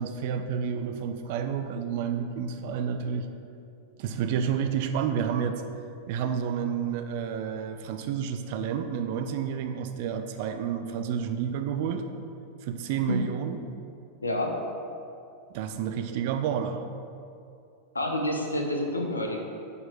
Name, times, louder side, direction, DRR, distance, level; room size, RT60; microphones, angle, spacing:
voice 1, 0.0-3.3 4.0-5.6 6.1-12.0 12.6-13.6 15.5-16.8, right 7 dB, 50° right, 7 dB, 0.5 m, -30 dB
voice 2, 14.2-14.6 17.9-19.4, left 1 dB, 80° left, 2 dB, 0.7 m, -28 dB
5.6 x 4.7 x 6.1 m, 2.6 s
figure-of-eight pair, 90°, 0 cm